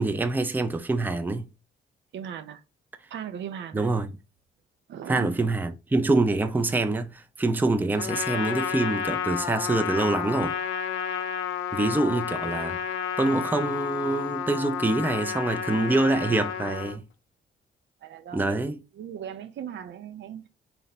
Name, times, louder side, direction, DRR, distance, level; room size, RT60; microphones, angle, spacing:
voice 1, 0.0-1.5 3.7-4.1 5.1-10.5 11.7-12.8 13.2-17.0 18.3-18.8, right 2 dB, 10° right, 0.5 m, -25 dB
voice 2, 2.1-2.6 3.1-3.9 4.9-5.3 18.0-18.6 18.9-20.5, right 9 dB, 65° right, 0.6 m, -38 dB
Trumpet, 8.0-17.0, left 8 dB, 85° left, 0.6 m, -31 dB
4.1 x 2.1 x 4.0 m
cardioid pair, 90°, 20 cm